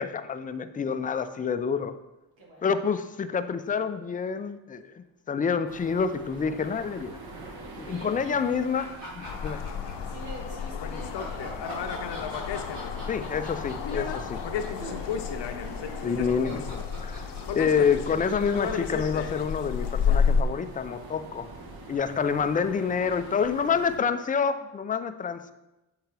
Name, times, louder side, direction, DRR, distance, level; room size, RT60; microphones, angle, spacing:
voice 1, 0.0-1.9 2.6-7.2 7.8-8.9 9.1-9.6 13.1-14.4 16.0-17.2 17.5-21.5 21.9-25.5, left 6 dB, 20° left, 11 dB, 0.4 m, -28 dB
voice 2, 2.4-2.8 7.8-8.5 10.0-12.5 13.9-14.2 14.7-16.2, right 2 dB, 70° right, -2 dB, 2.0 m, -46 dB
sound 1, 5.7-24.0, right 2 dB, 50° right, 1.2 m, -45 dB
sound 2, 8.7-10.3 10.9-19.2, equal, 85° right, 2.2 m, -43 dB
sound 3, 9.2-20.4, left 6 dB, 60° left, 0.7 m, -31 dB
7.7 x 3.8 x 3.3 m, 0.98 s
supercardioid pair, 45°, 48 cm